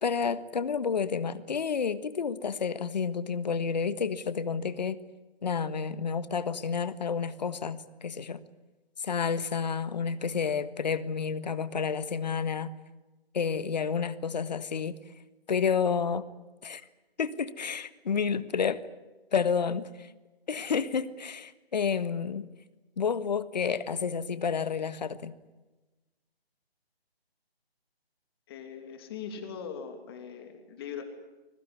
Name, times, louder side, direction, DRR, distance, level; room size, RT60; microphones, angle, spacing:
voice 1, 0.0-5.0 5.4-8.4 9.0-12.7 13.3-15.0 15.5-16.2 16.6-16.8 17.2-18.8 19.3-20.1 20.5-22.5 23.0-25.3, left 6 dB, 45° left, 15 dB, 1.5 m, -30 dB
voice 2, 28.5-31.0, left 7 dB, 25° left, 6 dB, 2.8 m, -40 dB
25.5 x 22.0 x 9.7 m, 1.1 s
figure-of-eight pair, 150°, 31 cm